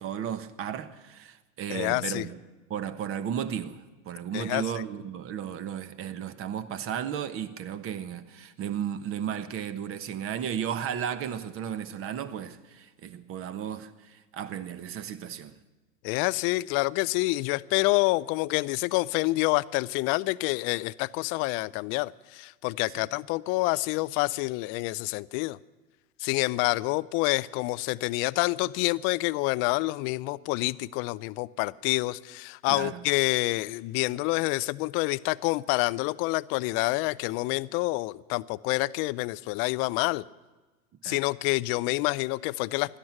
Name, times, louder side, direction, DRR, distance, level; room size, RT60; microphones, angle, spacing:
voice 1, 0.0-2.4 2.7-15.5 22.9-23.1 32.7-33.0 41.0-41.2, right 9 dB, 35° right, 1.2 m, -34 dB
voice 2, 1.7-2.2 4.3-4.8 16.0-25.6 26.2-40.2 41.0-43.0, left 22 dB, 35° left, 0.4 m, -27 dB
16.5 x 12.5 x 5.9 m
hypercardioid pair, 105°, 39 cm